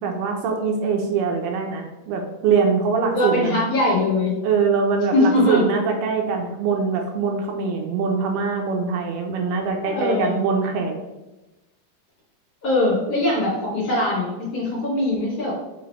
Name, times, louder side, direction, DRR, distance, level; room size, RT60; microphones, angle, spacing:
voice 1, 0.0-3.6 4.4-10.9, right 5 dB, 80° right, 2 dB, 2.6 m, -23 dB
voice 2, 3.1-4.4 5.1-5.6 9.8-10.3 12.6-15.5, left 2 dB, 45° left, -7 dB, 2.9 m, -21 dB
5.9 x 3.8 x 4.8 m, 1.0 s
omnidirectional pair, 4.7 m